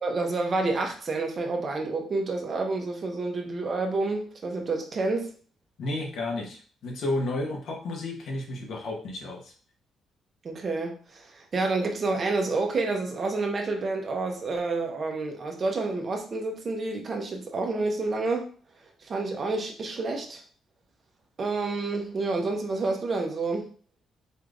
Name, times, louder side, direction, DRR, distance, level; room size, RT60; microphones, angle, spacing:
voice 1, 0.0-5.3 10.4-18.5 19.0-20.4 21.4-23.7, right 3 dB, 45° right, 2 dB, 0.9 m, -29 dB
voice 2, 5.8-9.5, left 2 dB, 70° left, 0 dB, 1.2 m, -32 dB
4.3 x 3.3 x 2.6 m, 0.42 s
cardioid pair, 90°, 0 cm